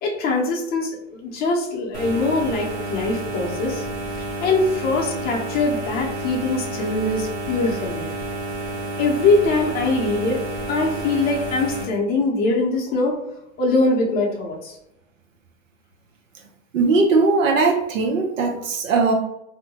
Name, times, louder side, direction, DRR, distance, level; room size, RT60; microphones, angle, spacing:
voice 1, 0.0-3.8 4.2-8.1 9.0-10.4 10.7-13.2 13.6-14.7, left 2 dB, 25° left, -1 dB, 0.7 m, -22 dB
sound 1, 1.9-11.8, right 2 dB, 60° right, 0.9 m, -30 dB
voice 2, 16.7-19.1, right 3 dB, 85° right, 2 dB, 0.8 m, -19 dB
2.7 x 2.2 x 2.7 m, 0.82 s
hypercardioid pair, 130°, 38 cm